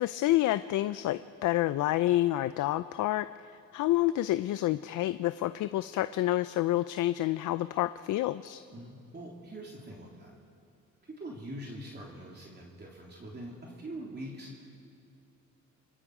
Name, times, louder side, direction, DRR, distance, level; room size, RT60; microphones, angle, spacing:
voice 1, 0.0-8.6, left 15 dB, 80° left, 13 dB, 0.5 m, -28 dB
voice 2, 8.7-10.3 11.2-14.7, right 1 dB, 35° right, -2 dB, 3.5 m, -43 dB
29.0 x 24.0 x 4.9 m, 2.5 s
cardioid pair, 90°, 30 cm